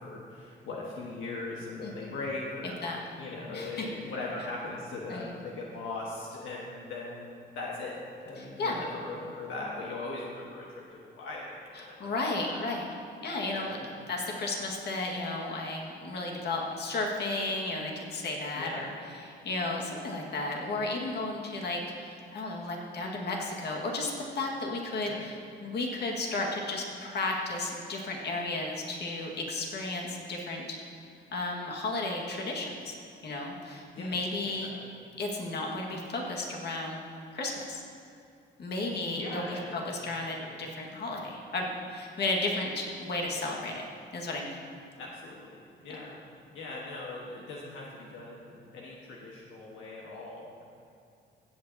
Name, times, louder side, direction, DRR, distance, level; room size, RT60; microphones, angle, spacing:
voice 1, 0.0-2.8 3.2-12.0 12.5-12.7 13.5-13.8 18.5-18.9 25.1-25.2 33.9-34.1 34.5-34.9 39.1-40.5 45.0-46.2 46.5-50.6, left 2 dB, 80° left, -4 dB, 1.4 m, -40 dB
voice 2, 1.8-2.1 2.8-3.0 3.5-3.9 5.1-5.3 8.4-8.8 11.7-12.9 13.2-18.9 19.2-30.8 31.3-33.0 33.2-34.7 35.2-37.0 37.3-37.8 38.6-43.8 44.1-44.6, left 2 dB, 55° left, -1 dB, 1.8 m, -33 dB
15.5 x 8.4 x 2.8 m, 2.6 s
cardioid pair, 90°, 20 cm